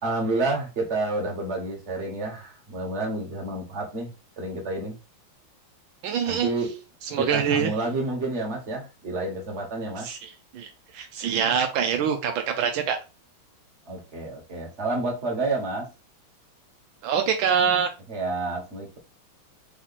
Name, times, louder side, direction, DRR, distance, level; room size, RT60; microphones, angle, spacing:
voice 1, 0.0-5.0 6.3-6.8 7.2-10.1 13.9-15.9 18.1-19.0, right 2 dB, 35° right, 0 dB, 1.6 m, -29 dB
voice 2, 6.0-6.5 7.1-7.7 10.0-13.0 17.0-17.9, right 7 dB, 80° right, 5 dB, 1.4 m, -25 dB
4.1 x 2.9 x 4.1 m, 0.29 s
omnidirectional pair, 2.2 m